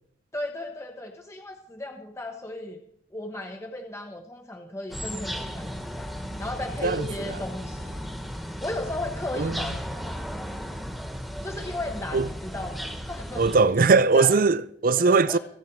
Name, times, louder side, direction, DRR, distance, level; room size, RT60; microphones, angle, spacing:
voice 1, 0.3-2.8 3.1-6.1 6.4-8.0 8.6-10.2 11.4-13.5 14.1-14.4 15.0-15.4, left 1 dB, 15° left, 1.1 m, -35 dB
sound 1, 4.9-13.6, equal, ahead, 1.5 m, -35 dB
voice 2, 9.3-9.7 12.1-12.3 13.4-15.4, right 4 dB, 55° right, 0.5 m, -20 dB
24.5 x 9.2 x 4.6 m
head